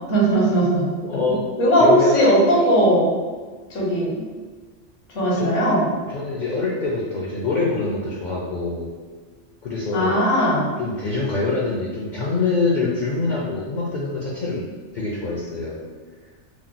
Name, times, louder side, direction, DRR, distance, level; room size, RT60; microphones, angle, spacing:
voice 1, 0.1-0.9 1.6-3.1 3.7-4.2 5.1-5.9 9.9-10.7, right 1 dB, 80° left, -4 dB, 1.2 m, -18 dB
voice 2, 1.0-1.4 1.8-2.2 5.4-5.5 6.1-8.9 9.6-10.2 10.8-14.6 14.9-15.8, left 3 dB, 60° left, -5 dB, 0.5 m, -25 dB
2.9 x 2.0 x 3.8 m, 1.4 s
omnidirectional pair, 1.2 m